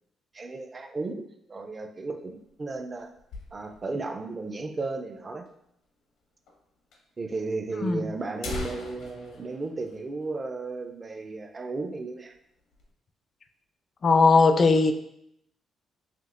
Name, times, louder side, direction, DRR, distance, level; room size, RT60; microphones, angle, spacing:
voice 1, 0.3-3.1 3.5-5.5 7.2-12.4, right 3 dB, 30° right, 6 dB, 0.5 m, -34 dB
sound 1, 2.2-4.0 4.4-4.5 4.7-4.8 5.5-5.6 6.5-6.6 6.9-7.0 7.8-7.9 8.2-10.8 11.1-11.3 11.7-11.9 12.3-12.9, left 2 dB, 85° left, 0.9 m, -41 dB
voice 2, 7.8-8.1 14.0-14.9, left 4 dB, 45° left, 8 dB, 0.4 m, -19 dB
5.8 x 2.8 x 2.5 m, 0.76 s
cardioid pair, 90°, 0 cm